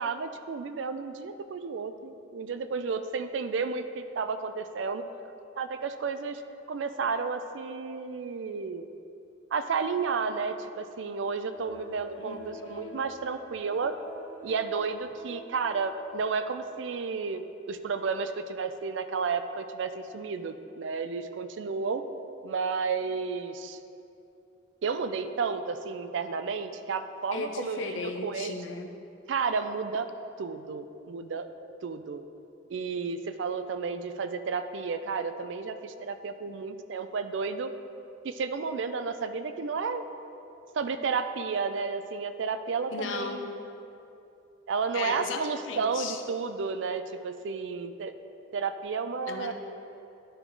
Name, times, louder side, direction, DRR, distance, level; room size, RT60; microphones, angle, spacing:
voice 1, 0.0-5.0 5.6-6.4 6.7-8.9 9.5-13.9 14.4-22.0 22.4-23.8 24.8-28.6 29.3-30.1 30.4-31.5 31.8-32.2 32.7-37.7 38.2-40.1 40.8-43.5 44.7-48.1 48.5-49.5, right 5 dB, 70° right, 10 dB, 0.4 m, -32 dB
sound 1, 11.5-17.7 18.1-18.2, right 1 dB, 10° left, 0.7 m, -48 dB
voice 2, 12.2-13.0 27.3-28.9 42.9-43.5 44.9-46.2 49.3-49.5, left 4 dB, 75° left, 5 dB, 0.6 m, -36 dB
11.0 x 4.6 x 3.8 m, 2.8 s
head